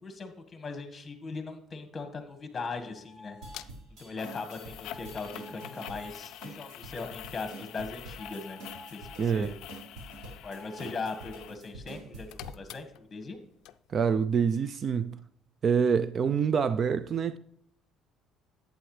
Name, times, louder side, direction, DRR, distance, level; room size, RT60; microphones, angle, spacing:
voice 1, 0.0-3.4 4.0-8.6 8.9-9.5 10.3-13.4, left 4 dB, 25° left, 1.6 m, -39 dB
sound 1, 2.0-9.4 10.4-13.4, left 1 dB, 10° right, 3.5 m, -54 dB
sound 2, 3.4-12.8, right 2 dB, 75° right, 4.6 m, -46 dB
sound 3, 3.5-3.7 4.2-11.6 11.9-13.4 13.7-13.8, left 13 dB, 70° left, 0.4 m, -46 dB
voice 2, 9.2-9.5 13.9-15.2 15.6-17.4, right 6 dB, 40° right, 0.4 m, -26 dB
11.0 x 8.7 x 3.3 m
cardioid pair, 110°, 0 cm